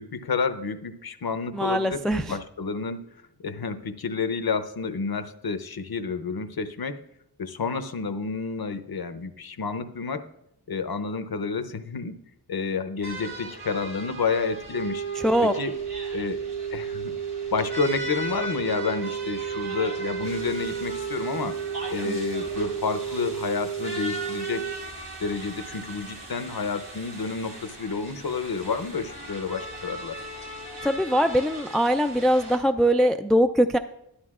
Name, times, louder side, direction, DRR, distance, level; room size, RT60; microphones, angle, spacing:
voice 1, 0.0-3.0 3.4-7.0 7.4-10.3 10.7-12.2 12.5-15.0 15.5-15.7 16.1-16.4 16.7-17.2 17.5-21.6 21.9-24.8 25.2-30.2, left 5 dB, 60° left, 10 dB, 0.8 m, -30 dB
voice 2, 1.5-2.4 15.2-15.5 22.1-22.2 30.8-33.8, equal, ahead, 8 dB, 0.3 m, -22 dB
sound 1, 13.0-32.6, right 1 dB, 80° right, 3.5 m, -39 dB
sound 2, 14.7-24.7, right 8 dB, 65° right, 1.1 m, -32 dB
12.5 x 11.5 x 2.4 m, 0.82 s
wide cardioid pair, 75°, 41 cm